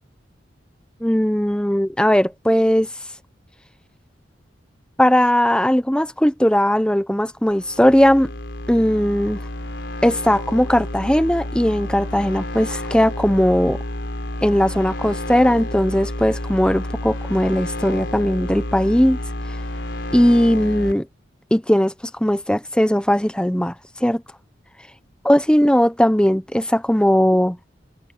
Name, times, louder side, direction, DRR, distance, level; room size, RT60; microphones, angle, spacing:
voice 1, 1.0-2.9 5.0-8.3 8.7-9.4 10.0-13.8 14.4-19.2 20.1-21.1 21.5-23.7 24.0-24.2 25.2-27.6, equal, 5° left, 0.9 m, -18 dB
sound 1, 7.5-20.9, left 1 dB, 70° left, 4.5 m, -30 dB
head